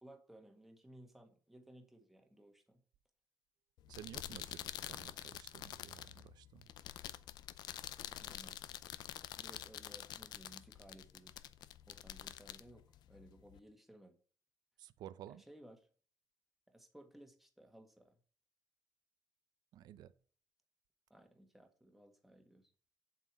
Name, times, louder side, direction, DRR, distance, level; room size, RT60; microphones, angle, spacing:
voice 1, 0.0-2.8 7.5-7.6 8.2-8.6 9.4-11.4 11.9-14.2 15.3-15.8 16.7-18.2 21.1-22.7, right 1 dB, ahead, 4 dB, 1.6 m, -59 dB
sound 1, 3.8-13.6, left 12 dB, 85° left, 0.6 m, -48 dB
voice 2, 3.9-6.7 14.8-15.4 19.7-20.1, right 11 dB, 85° right, 13 dB, 0.6 m, -53 dB
8.4 x 7.5 x 4.8 m, 0.43 s
cardioid pair, 150°, 7 cm